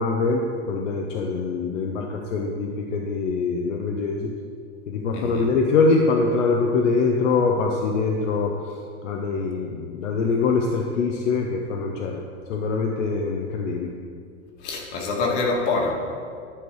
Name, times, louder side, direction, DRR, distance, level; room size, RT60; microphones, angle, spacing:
voice 1, 0.0-4.3 4.9-8.5 9.0-12.2 12.5-13.9, left 4 dB, 90° left, 1 dB, 0.8 m, -23 dB
voice 2, 5.1-5.5 14.6-15.9, left 3 dB, 65° left, 0 dB, 1.9 m, -25 dB
11.0 x 4.7 x 4.7 m, 2.3 s
supercardioid pair, 120°, 37 cm